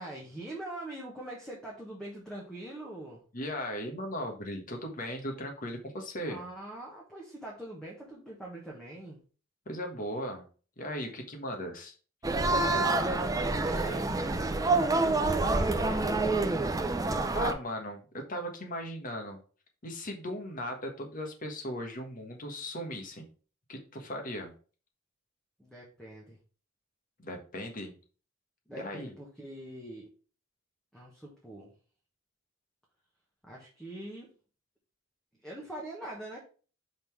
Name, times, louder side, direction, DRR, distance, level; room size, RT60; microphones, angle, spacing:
voice 1, 0.0-3.2 6.2-9.2 12.6-14.1 15.2-16.2 25.6-26.4 28.7-30.1 30.9-31.7 33.4-34.3 35.4-36.4, right 1 dB, 5° left, -3 dB, 1.2 m, -43 dB
voice 2, 3.3-6.4 9.6-10.4 10.8-11.9 17.3-19.4 19.8-23.3 23.7-24.5 27.2-27.9 28.8-29.1, equal, 45° left, 3 dB, 1.3 m, -37 dB
sound 1, 12.2-17.5, right 2 dB, 20° right, 0.5 m, -27 dB
5.4 x 3.8 x 4.6 m, 0.39 s
head